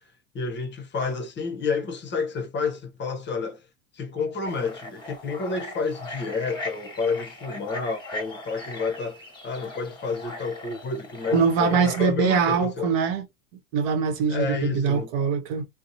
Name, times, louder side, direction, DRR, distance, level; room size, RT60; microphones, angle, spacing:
voice 1, 0.3-3.6 3.9-13.0 14.3-15.1, left 4 dB, 25° left, 0.7 m, -30 dB
sound 1, 4.4-12.0, left 1 dB, 10° left, 1.2 m, -39 dB
voice 2, 11.3-13.2 13.7-15.7, right 6 dB, 60° right, 0.9 m, -23 dB
2.8 x 2.1 x 2.5 m
hypercardioid pair, 100°, 42 cm